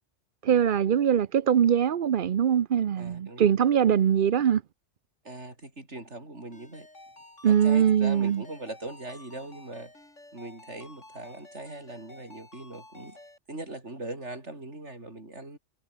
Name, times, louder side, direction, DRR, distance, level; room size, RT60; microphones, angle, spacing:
voice 1, 0.4-4.6 7.4-8.4, right 9 dB, 50° right, 0.7 m, -22 dB
voice 2, 3.0-3.6 5.2-6.9 7.5-9.9 10.3-13.2 13.5-15.6, right 2 dB, 70° right, 6.3 m, -40 dB
Ringtone, 6.5-13.4, left 2 dB, 85° left, 6.9 m, -51 dB
omnidirectional pair, 1.2 m